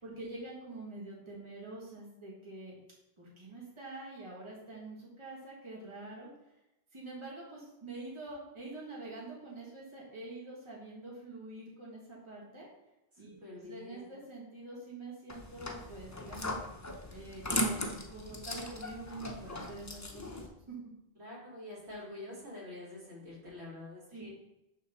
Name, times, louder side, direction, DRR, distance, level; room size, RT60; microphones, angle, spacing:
voice 1, 0.0-2.8 3.2-6.3 6.9-12.7 13.2-16.6 17.1-20.7 24.1-24.3, right 2 dB, 25° right, -5 dB, 1.7 m, -46 dB
voice 2, 13.4-14.2 21.2-24.3, left 2 dB, 65° right, -5 dB, 2.1 m, -46 dB
sound 1, 15.3-20.5, left 1 dB, 20° left, 0.5 m, -38 dB
6.1 x 3.5 x 5.9 m, 0.93 s
omnidirectional pair, 1.2 m